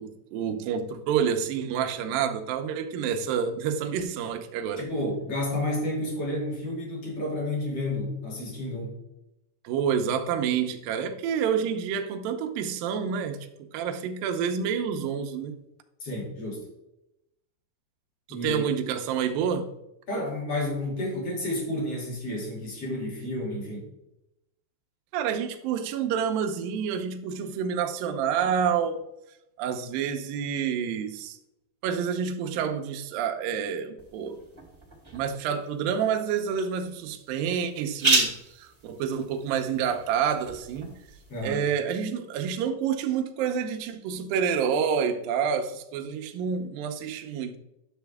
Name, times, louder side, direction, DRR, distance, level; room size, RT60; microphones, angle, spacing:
voice 1, 0.0-4.9 9.6-13.4 13.7-15.5 18.3-19.7 25.1-29.0 29.6-31.4 31.8-34.4 35.1-40.9 41.4-47.6, right 7 dB, 75° right, 2.2 m, -28 dB
voice 2, 4.8-9.0 16.0-16.6 18.3-18.6 20.1-23.9 41.3-41.6, left 1 dB, 40° left, 3.3 m, -31 dB
sound 1, 34.0-41.5, right 2 dB, 15° right, 1.0 m, -33 dB
10.0 x 7.1 x 3.5 m
omnidirectional pair, 4.8 m